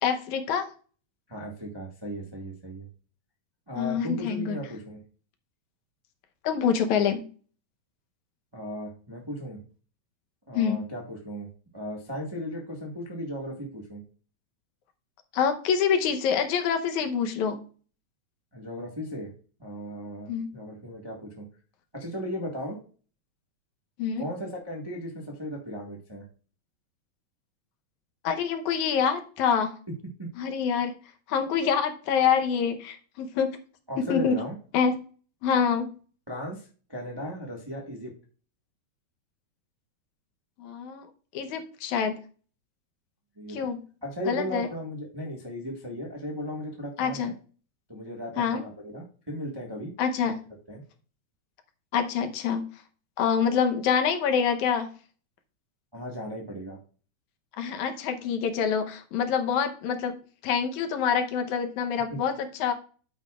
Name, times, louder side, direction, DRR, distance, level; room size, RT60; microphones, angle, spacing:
voice 1, 0.0-0.7 3.8-4.6 6.4-7.3 10.5-10.8 15.3-17.6 20.3-20.5 24.0-24.3 28.2-29.8 30.4-30.9 31.3-33.6 34.0-34.4 34.7-34.9 35.4-35.9 40.6-41.1 41.3-42.2 43.5-43.8 44.3-44.7 47.0-47.3 48.4-48.6 50.0-50.4 51.9-52.7 53.2-54.9 57.6-60.2 60.4-62.7, left 7 dB, 80° left, 6 dB, 2.4 m, -26 dB
voice 2, 1.3-2.8 3.7-5.0 8.5-9.6 10.5-11.5 11.7-14.0 18.5-19.3 19.6-21.5 21.9-22.8 24.2-26.2 30.2-30.3 33.9-34.5 36.3-38.1 43.4-43.6 44.0-47.3 47.9-49.9 50.2-50.4 50.7-50.8 55.9-56.8, equal, 20° right, -2 dB, 0.6 m, -36 dB
9.7 x 8.5 x 2.4 m, 0.40 s
omnidirectional pair, 3.4 m